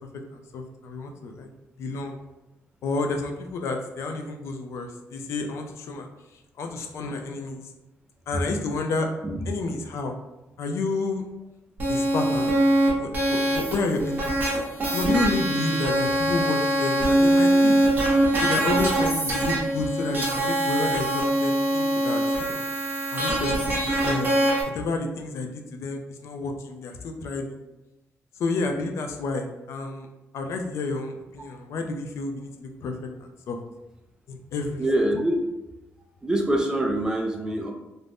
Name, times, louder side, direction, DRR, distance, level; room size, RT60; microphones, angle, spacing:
voice 1, 0.3-1.5 1.8-2.2 2.8-6.1 6.6-7.7 8.3-9.1 9.5-10.2 10.6-11.3 11.9-12.6 13.0-14.4 14.9-17.8 18.4-22.6 23.1-24.3 24.7-27.6 28.4-30.1 30.3-33.0 33.5-33.6 34.3-34.9, left 3 dB, 65° left, 4 dB, 0.4 m, -30 dB
voice 2, 9.2-9.5 34.8-35.4 36.2-37.7, right 1 dB, 15° right, 2 dB, 0.3 m, -25 dB
sound 1, 11.8-24.6, right 1 dB, 40° right, 0.8 m, -23 dB
2.5 x 2.1 x 3.3 m, 1.0 s
cardioid pair, 155°, 5 cm